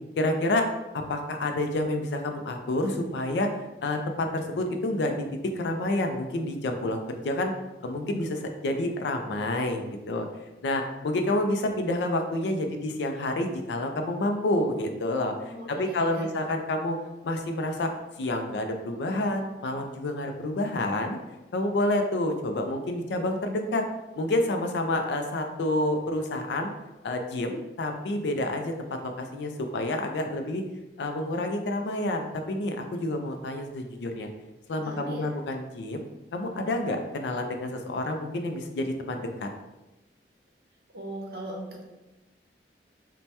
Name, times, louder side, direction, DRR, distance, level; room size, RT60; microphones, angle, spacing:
voice 1, 0.2-3.5 3.8-7.5 7.8-10.3 10.6-17.0 17.2-17.9 18.2-21.2 21.5-23.8 24.2-26.7 27.0-28.7 29.0-30.6 31.0-34.3 34.7-36.0 36.3-39.5, left 1 dB, 80° left, 5 dB, 0.4 m, -29 dB
voice 2, 15.4-16.3 34.8-35.3 40.9-41.9, right 1 dB, 60° right, 0 dB, 0.6 m, -38 dB
2.8 x 2.1 x 3.2 m, 1.0 s
head